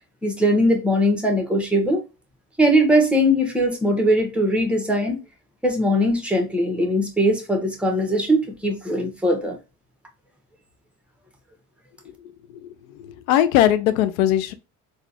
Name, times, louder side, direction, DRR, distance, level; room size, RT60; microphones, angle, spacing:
voice 1, 0.2-2.0 2.6-5.2 5.6-9.6, equal, 5° right, 1.2 m, -20 dB
voice 2, 13.0-14.5, left 12 dB, 75° left, 0.6 m, -19 dB
3.8 x 2.5 x 2.7 m
hypercardioid pair, 65°, 42 cm